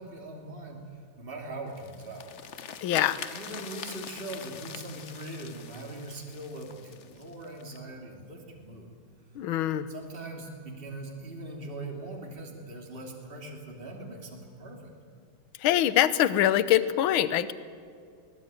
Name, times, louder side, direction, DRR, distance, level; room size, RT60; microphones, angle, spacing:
voice 1, 0.0-2.3 3.3-8.9 9.9-14.9, right 2 dB, 25° right, 0 dB, 3.2 m, -41 dB
sound 1, 1.7-7.8, left 7 dB, 55° left, 0.8 m, -44 dB
voice 2, 2.8-3.2 9.4-9.9 15.6-17.5, left 12 dB, 75° left, 15 dB, 1.7 m, -24 dB
22.5 x 19.0 x 9.1 m, 2.3 s
omnidirectional pair, 2.4 m